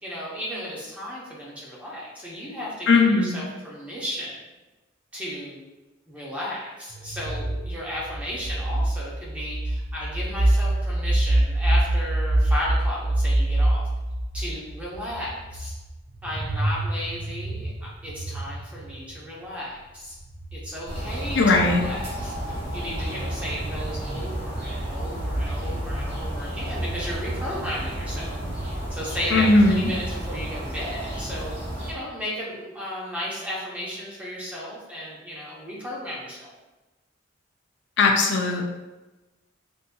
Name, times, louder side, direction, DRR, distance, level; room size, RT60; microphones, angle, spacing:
voice 1, 0.0-4.4 5.1-5.6 6.1-13.9 14.3-15.7 16.2-20.2 20.5-22.4 22.7-28.4 28.9-31.5 31.9-36.5, equal, 5° right, -6 dB, 0.7 m, -34 dB
voice 2, 2.9-3.4 21.3-21.8 29.3-29.9 38.0-38.6, left 3 dB, 65° left, 2 dB, 0.4 m, -18 dB
sound 1, 6.9-19.3 20.2-26.2, right 1 dB, 45° right, 0.5 m, -26 dB
sound 2, 20.9-31.9, right 1 dB, 60° right, 1.1 m, -32 dB
3.8 x 2.6 x 2.2 m, 1.1 s
head